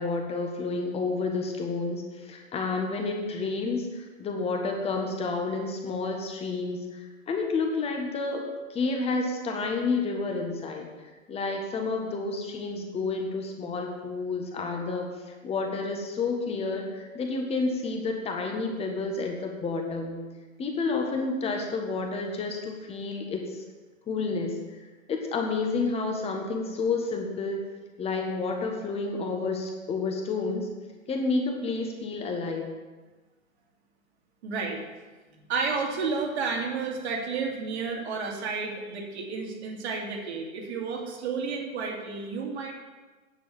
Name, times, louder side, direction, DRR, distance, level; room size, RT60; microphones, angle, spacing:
voice 1, 0.0-10.9 11.3-15.1 15.4-20.2 20.6-23.6 24.1-24.8 25.1-27.6 28.0-30.7 31.1-32.7, left 3 dB, 15° left, 2 dB, 1.4 m, -30 dB
voice 2, 34.4-34.8 35.5-42.7, right 4 dB, 50° right, 0 dB, 2.8 m, -31 dB
9.9 x 6.9 x 7.3 m, 1.3 s
figure-of-eight pair, 115°, 41 cm